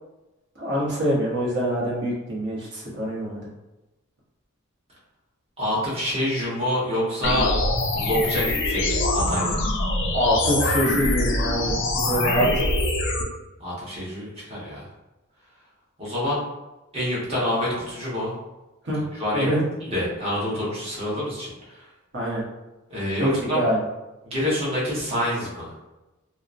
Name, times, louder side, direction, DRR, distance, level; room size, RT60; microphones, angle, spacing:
voice 1, 0.6-3.4 10.1-12.5 18.9-19.0 19.3-19.6 22.1-22.4 23.2-23.8, equal, 55° right, -5 dB, 1.0 m, -24 dB
voice 2, 5.6-7.5 7.9-9.6 13.6-14.8 16.0-16.4 16.9-18.3 18.9-19.5 19.8-21.5 22.9-23.6 24.2-25.7, left 1 dB, 30° right, -7 dB, 1.0 m, -27 dB
sound 1, 7.2-13.2, left 2 dB, 55° left, 0.4 m, -24 dB
2.9 x 2.0 x 2.5 m, 1.0 s
head